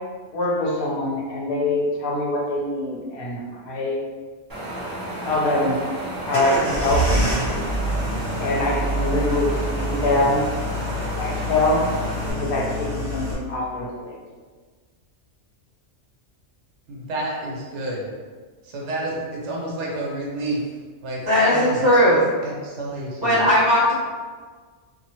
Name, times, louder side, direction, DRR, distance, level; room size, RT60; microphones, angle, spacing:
voice 1, 0.3-4.0 5.2-5.8 6.3-7.0 8.4-10.4 11.2-11.8 12.3-14.1 21.5-21.6, left 2 dB, 55° left, -3 dB, 0.8 m, -24 dB
Wind, 4.5-12.3, right 1 dB, 20° right, 0.7 m, -32 dB
sound 1, 6.3-13.3, right 1 dB, 30° left, 1.0 m, -26 dB
voice 2, 16.9-18.1 18.6-20.6 21.0-21.2 21.5-21.7 22.4-23.4, right 1 dB, 75° right, -3 dB, 1.1 m, -30 dB
voice 3, 21.2-22.3 23.2-23.9, equal, 55° right, -14 dB, 1.5 m, -17 dB
2.8 x 2.4 x 2.9 m, 1.5 s
omnidirectional pair, 1.2 m